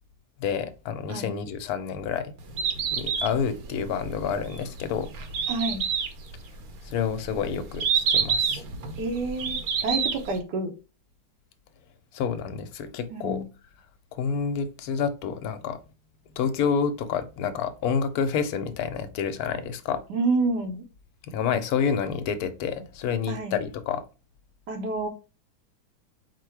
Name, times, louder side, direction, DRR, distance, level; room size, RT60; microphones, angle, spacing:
voice 1, 0.4-2.3 2.9-5.1 6.8-8.6 12.1-13.5 14.1-15.8 16.4-20.0 21.3-24.0, left 6 dB, 70° left, 1.0 m, -28 dB
Bird, 2.4-10.4, right 6 dB, 65° right, 1.1 m, -28 dB
voice 2, 5.5-5.8 9.0-10.7 13.1-13.4 20.1-20.8 23.3-23.6 24.7-25.1, right 3 dB, 85° right, 1.4 m, -28 dB
4.6 x 2.2 x 4.5 m
omnidirectional pair, 1.8 m